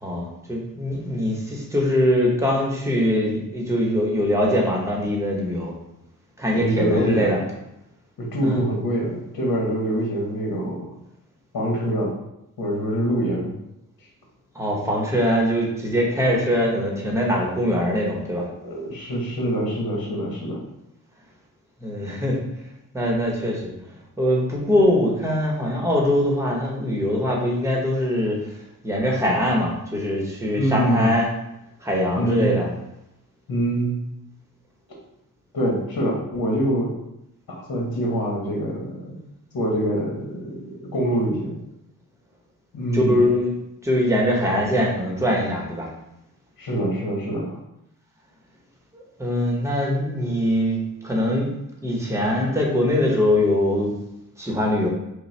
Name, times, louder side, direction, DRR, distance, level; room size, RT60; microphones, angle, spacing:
voice 1, 0.0-5.7 6.4-7.4 8.4-8.6 14.5-18.5 21.8-22.4 22.9-23.7 24.2-28.4 28.8-31.3 31.8-32.7 42.9-43.5 43.8-45.9 48.9-51.5 51.8-53.9 54.4-54.9, left 1 dB, 10° right, -2 dB, 0.9 m, -22 dB
voice 2, 6.5-7.4 8.2-10.8 11.5-12.1 12.6-13.5 18.5-20.6 30.6-31.1 32.2-32.5 33.5-33.9 35.5-36.9 37.5-39.2 39.5-41.6 42.7-43.2 46.6-47.6, right 1 dB, 75° left, -2 dB, 1.1 m, -25 dB
5.4 x 2.1 x 3.2 m, 0.86 s
wide cardioid pair, 120°, 35 cm